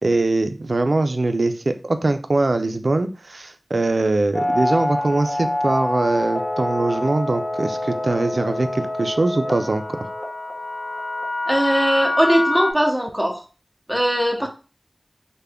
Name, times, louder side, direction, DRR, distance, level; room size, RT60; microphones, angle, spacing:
voice 1, 0.0-10.1, right 2 dB, 80° right, 9 dB, 0.4 m, -22 dB
sound 1, 4.3-12.7, left 1 dB, 40° left, 0.8 m, -26 dB
voice 2, 11.5-13.4 13.9-14.5, equal, ahead, 2 dB, 0.9 m, -20 dB
3.3 x 2.2 x 3.5 m, 0.33 s
wide cardioid pair, 45°, 0 cm